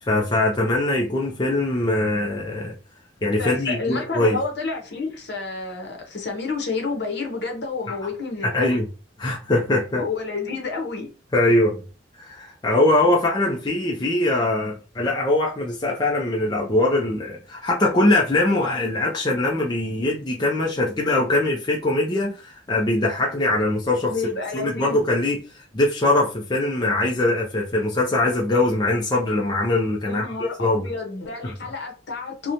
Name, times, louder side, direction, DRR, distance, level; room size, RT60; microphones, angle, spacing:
voice 1, 0.0-2.7 3.2-4.4 7.9-8.0 8.4-8.9 9.2-10.0 11.3-11.8 12.2-24.1 24.5-30.9 31.4-31.5, left 2 dB, 20° left, 0.4 m, -22 dB
voice 2, 3.4-8.8 9.9-11.1 24.1-25.0 30.1-32.5, left 4 dB, 55° left, 0.7 m, -30 dB
2.9 x 2.1 x 2.5 m
head